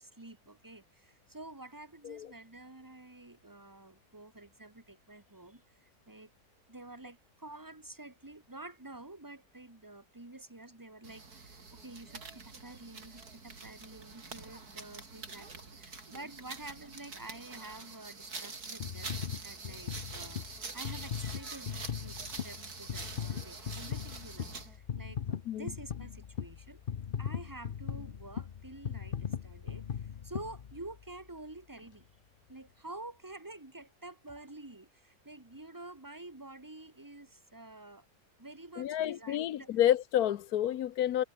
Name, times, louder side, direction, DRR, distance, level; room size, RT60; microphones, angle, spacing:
voice 1, 0.0-6.3 6.7-19.2 19.4-26.8 27.2-32.1 32.5-38.1 38.4-39.7, right 2 dB, 15° right, 1.9 m, -49 dB
sound 1, 11.0-24.8, right 4 dB, 80° right, 3.8 m, -46 dB
sound 2, 18.8-31.2 31.8-31.9, left 8 dB, 45° left, 0.8 m, -39 dB
voice 2, 38.8-41.2, left 11 dB, 75° left, 1.3 m, -29 dB
omnidirectional pair, 1.6 m